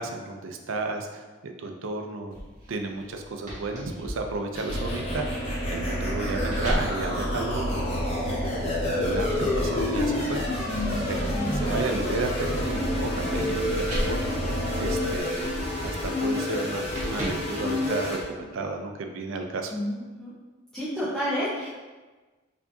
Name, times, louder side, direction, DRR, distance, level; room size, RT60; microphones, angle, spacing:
voice 1, 0.0-2.3 2.7-5.3 5.7-19.7, right 3 dB, 75° right, 4 dB, 0.4 m, -33 dB
sound 1, 2.3-8.1 8.7-18.2, equal, 40° right, 1.3 m, -38 dB
sound 2, 4.6-15.2, right 1 dB, 75° left, 1.0 m, -31 dB
sound 3, 4.6-18.2, left 2 dB, 30° left, 0.9 m, -30 dB
voice 2, 19.7-20.3 20.7-21.7, equal, ahead, -12 dB, 0.7 m, -30 dB
4.5 x 2.7 x 2.6 m, 1.3 s
head